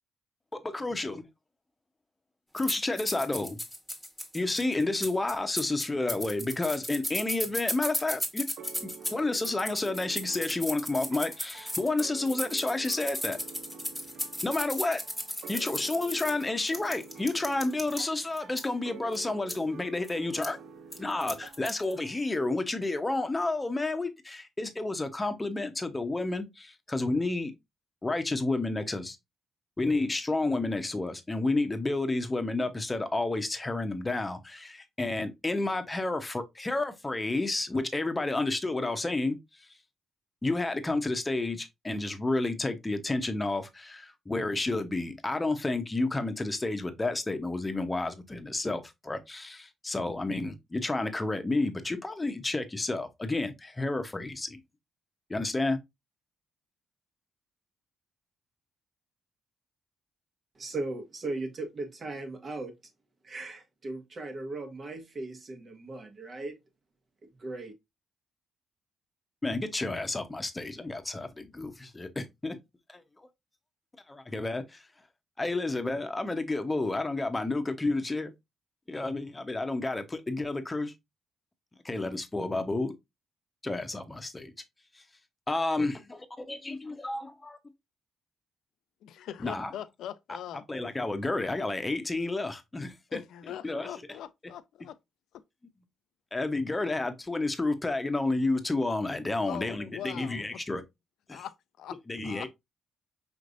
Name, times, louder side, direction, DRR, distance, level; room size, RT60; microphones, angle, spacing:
voice 1, 0.5-1.2 2.5-3.6 4.3-8.5 8.8-13.4 14.4-15.0 15.5-20.6 21.0-27.5 28.0-29.2 29.8-39.4 40.4-54.6 55.3-55.8 69.4-72.6 72.9-73.0 74.1-74.8 75.4-78.3 78.9-80.9 81.8-82.9 83.6-84.5 85.5-86.2 86.5-87.6 89.4-89.7 90.7-93.2 93.6-93.9 96.3-100.8 101.3-101.4 102.1-102.5, left 2 dB, 20° left, 0.9 m, -30 dB
sound 1, 2.6-18.0 18.4-18.7 19.1-19.2 19.5-19.6 20.0-20.1 20.4-20.5 20.9-21.9, equal, ahead, 1.4 m, -35 dB
sound 2, 8.6-22.3, right 6 dB, 75° right, 0.6 m, -48 dB
voice 2, 60.6-62.7 63.2-66.6 67.4-67.7, right 2 dB, 45° right, 1.3 m, -37 dB
voice 3, 89.0-90.6 93.1-95.0 99.5-100.4 101.3-102.0 102.2-102.5, left 11 dB, 80° left, 0.4 m, -41 dB
5.1 x 3.2 x 2.6 m
cardioid pair, 75°, 0 cm